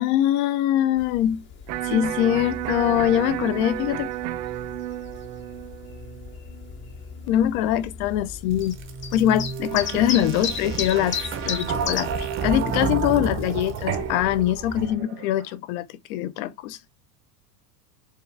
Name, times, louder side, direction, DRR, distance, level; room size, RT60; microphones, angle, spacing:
voice 1, 0.0-1.4 1.8-4.1 7.3-8.8 9.1-11.2 11.4-16.8, left 12 dB, 60° left, 0.7 m, -23 dB
sound 1, 1.0-14.9, left 6 dB, 25° left, 0.6 m, -37 dB
Electric guitar, 1.7-7.7, right 15 dB, 85° right, 0.6 m, -33 dB
sound 2, 8.5-15.2, right 6 dB, 25° right, 0.6 m, -30 dB
4.7 x 2.4 x 3.2 m
supercardioid pair, 145°, 48 cm